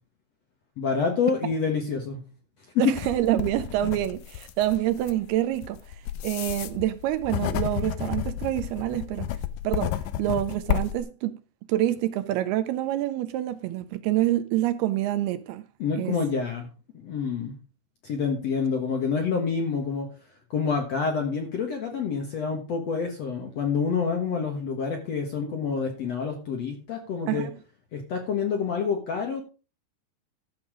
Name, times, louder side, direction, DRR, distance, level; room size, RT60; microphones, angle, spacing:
voice 1, 0.8-2.2 2.7-2.9 15.8-16.7 16.9-17.6 18.0-20.1 20.5-27.5 27.9-29.4, left 5 dB, 60° left, 1.8 m, -27 dB
voice 2, 2.8-5.8 6.2-9.3 9.6-9.9 10.2-11.4 11.7-15.6 16.0-16.2 27.3-27.5, right 14 dB, 80° right, 2.4 m, -26 dB
sound 1, 3.0-11.0, left 11 dB, 85° left, 1.9 m, -31 dB
12.5 x 7.1 x 4.9 m
omnidirectional pair, 4.8 m